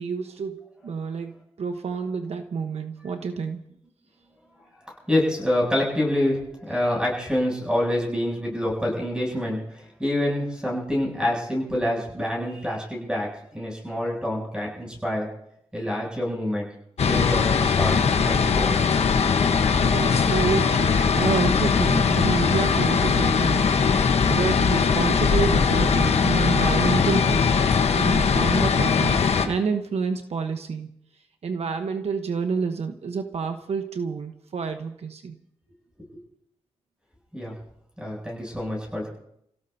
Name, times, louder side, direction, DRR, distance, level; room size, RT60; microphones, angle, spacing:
voice 1, 0.0-3.6 19.8-23.8 24.3-30.9 31.4-35.4, right 5 dB, 75° right, 6 dB, 1.1 m, -28 dB
voice 2, 4.9-15.3 15.7-16.7 17.0-18.8 36.0-36.1 37.3-37.5 38.0-39.1, left 1 dB, 10° right, -3 dB, 8.0 m, -27 dB
sound 1, 17.0-29.5, left 6 dB, 75° left, 1.1 m, -20 dB
30.0 x 17.0 x 2.8 m, 0.76 s
wide cardioid pair, 95°, 11 cm